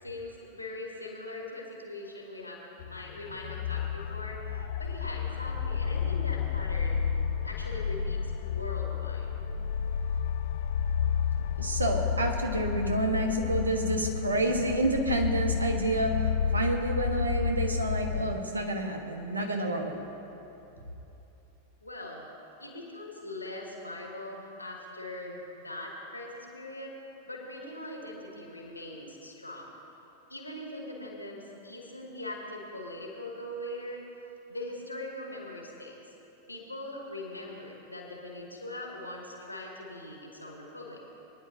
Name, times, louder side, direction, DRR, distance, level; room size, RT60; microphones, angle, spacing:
voice 1, 0.0-7.0 7.4-9.3 21.8-22.3 22.6-27.0 27.2-29.7 30.3-34.0 34.5-36.0 36.5-41.2, left 1 dB, 85° left, -2 dB, 2.6 m, -41 dB
sound 1, 2.8-18.4, left 7 dB, 55° left, 0.4 m, -31 dB
voice 2, 11.6-19.9, right 1 dB, 80° right, 3 dB, 1.4 m, -29 dB
22.5 x 10.5 x 2.8 m, 3.0 s
figure-of-eight pair, 90°, 0 cm